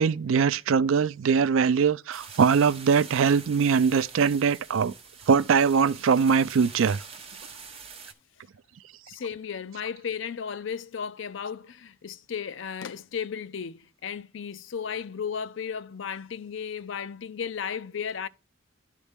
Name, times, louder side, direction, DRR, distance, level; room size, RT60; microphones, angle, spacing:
voice 1, 0.0-4.9 5.3-7.0, right 6 dB, 80° right, 0.4 m, -22 dB
sound 1, 2.1-8.1, right 5 dB, 30° right, 1.1 m, -45 dB
voice 2, 9.1-18.3, left 7 dB, 65° left, 0.5 m, -34 dB
11.5 x 4.1 x 3.4 m
head